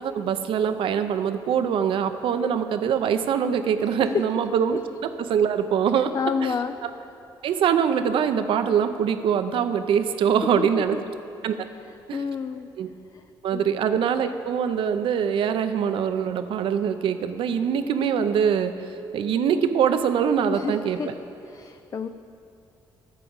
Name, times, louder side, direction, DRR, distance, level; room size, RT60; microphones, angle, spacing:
voice 1, 0.0-4.8 5.2-6.1 6.4-6.5 7.4-11.0 11.4-11.6 12.1-12.2 12.8-12.9 13.4-18.7 19.1-21.0, right 8 dB, 70° right, 9 dB, 0.6 m, -23 dB
voice 2, 6.1-6.7 10.6-11.0 12.1-12.7 13.1-13.2 13.5-13.6 20.5-20.7 21.0-21.1 21.4-22.1, left 6 dB, 40° left, 8 dB, 0.4 m, -28 dB
13.0 x 4.9 x 7.1 m, 2.7 s
cardioid pair, 80°, 9 cm